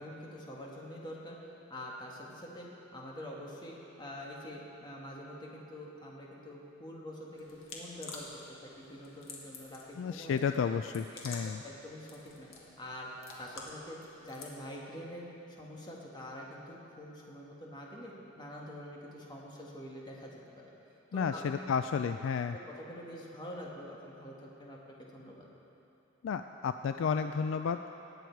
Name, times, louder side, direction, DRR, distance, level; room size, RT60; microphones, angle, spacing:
voice 1, 0.0-8.3 8.6-10.4 11.3-13.1 13.4-20.7 21.1-21.6 22.5-25.5, left 1 dB, 20° left, -3 dB, 1.7 m, -46 dB
sound 1, 7.3-14.6, left 3 dB, 85° left, 1.7 m, -50 dB
voice 2, 10.0-11.6 21.1-22.6 26.2-27.8, left 6 dB, 65° left, 9 dB, 0.3 m, -32 dB
18.5 x 7.9 x 4.6 m, 2.9 s
head